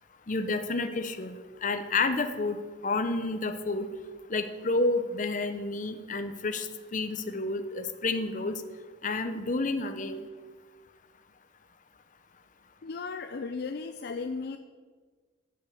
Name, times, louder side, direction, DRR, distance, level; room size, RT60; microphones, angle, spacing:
voice 1, 0.3-1.3 1.6-3.9 4.3-8.6 9.0-10.3, left 3 dB, 45° left, 9 dB, 0.8 m, -30 dB
voice 2, 12.8-14.6, left 4 dB, 60° left, 8 dB, 0.5 m, -35 dB
9.0 x 8.4 x 6.9 m, 1.5 s
head